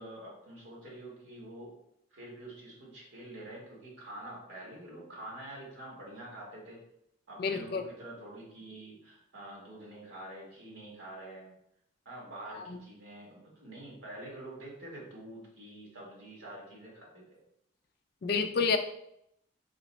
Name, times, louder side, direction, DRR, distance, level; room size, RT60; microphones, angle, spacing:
voice 1, 0.0-1.7 2.1-6.8 7.3-11.5 12.0-17.4, right 1 dB, 80° right, -3 dB, 1.5 m, -46 dB
voice 2, 7.4-7.8 12.5-12.8 18.2-18.8, left 5 dB, 50° left, 7 dB, 0.3 m, -29 dB
3.9 x 2.1 x 3.9 m, 0.77 s
head